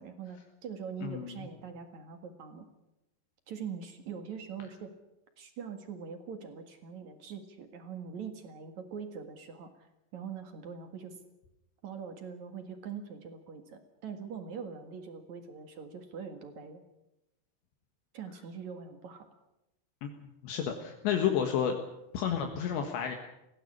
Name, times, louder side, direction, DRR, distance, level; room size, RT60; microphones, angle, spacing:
voice 1, 0.0-2.7 3.5-4.9 5.4-9.7 10.1-11.2 11.8-16.8 18.1-19.3, right 6 dB, 55° right, 7 dB, 2.3 m, -43 dB
voice 2, 1.0-1.5 20.0-20.1 20.4-21.8 22.1-23.2, left 8 dB, 70° left, 4 dB, 3.7 m, -31 dB
19.5 x 16.0 x 9.8 m, 0.91 s
omnidirectional pair, 5.5 m